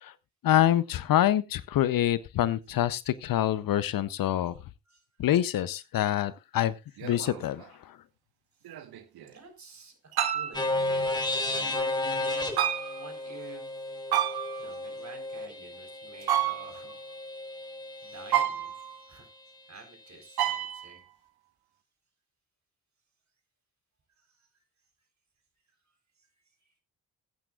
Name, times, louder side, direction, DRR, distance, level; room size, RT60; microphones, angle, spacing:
voice 1, 0.4-4.5 5.2-6.7 7.0-8.0, left 12 dB, 55° left, 17 dB, 0.7 m, -26 dB
sound 1, 5.3-5.4 7.0-7.7 8.6-9.3 10.1-10.6 12.6-13.1 14.1-14.8 16.2-16.9 18.3-19.0 20.4-21.0, right 11 dB, 60° right, 1.3 m, -30 dB
voice 2, 9.2-11.7 13.0-13.6 14.6-16.9 17.3-17.4 18.0-18.7 19.0-19.3 19.7-21.0 24.2-24.6, right 4 dB, 40° right, 5 dB, 4.3 m, -50 dB
sound 2, 10.5-18.4, left 2 dB, 10° left, 3.7 m, -33 dB
20.5 x 9.1 x 2.4 m, 0.25 s
hypercardioid pair, 45°, 41 cm